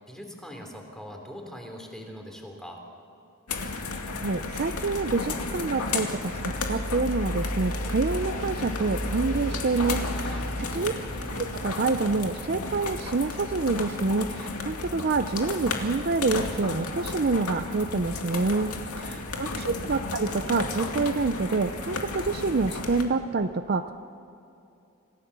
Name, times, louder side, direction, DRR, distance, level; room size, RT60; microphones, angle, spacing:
voice 1, 0.0-2.8 10.6-11.5 19.1-19.9, equal, ahead, 1 dB, 3.2 m, -43 dB
sound 1, 3.5-23.0, left 2 dB, 90° left, 2.4 m, -32 dB
voice 2, 4.2-10.9 11.3-23.9, right 3 dB, 45° right, 9 dB, 0.6 m, -27 dB
27.0 x 16.0 x 6.9 m, 2.7 s
head